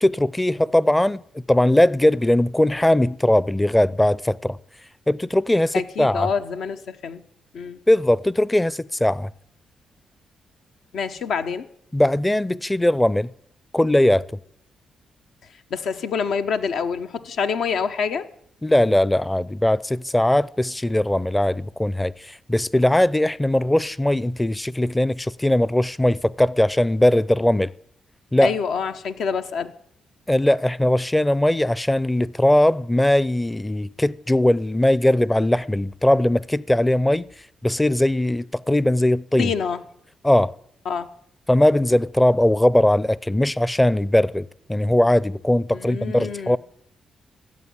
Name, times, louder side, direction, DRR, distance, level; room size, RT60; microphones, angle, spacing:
voice 1, 0.0-4.6 5.1-6.3 7.9-9.3 11.9-13.3 13.7-14.2 18.6-27.7 28.3-28.6 30.3-37.3 37.6-39.5 40.2-40.5 41.5-46.6, left 1 dB, 10° left, 0.5 m, -20 dB
voice 2, 5.7-7.2 7.5-7.8 10.9-11.7 15.7-18.3 28.4-29.7 39.4-39.8 40.8-41.1 45.7-46.6, left 6 dB, 75° left, 1.1 m, -26 dB
14.5 x 8.4 x 9.8 m
cardioid pair, 65°, 0 cm